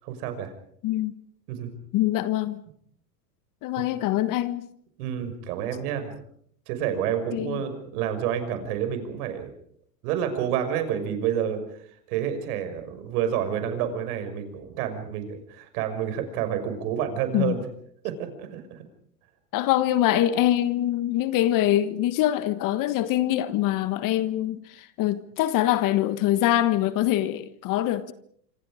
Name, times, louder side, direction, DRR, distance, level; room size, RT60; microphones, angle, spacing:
voice 1, 0.0-0.5 1.5-1.7 3.8-3.9 5.0-6.2 6.7-9.5 10.0-17.6 18.0-18.9, right 9 dB, 60° right, 5.9 m, -29 dB
voice 2, 0.8-1.1 1.9-2.6 3.6-4.7 7.3-7.6 17.3-17.6 19.5-28.1, left 13 dB, 40° left, 1.5 m, -24 dB
26.5 x 26.0 x 5.1 m
hypercardioid pair, 120°, 50 cm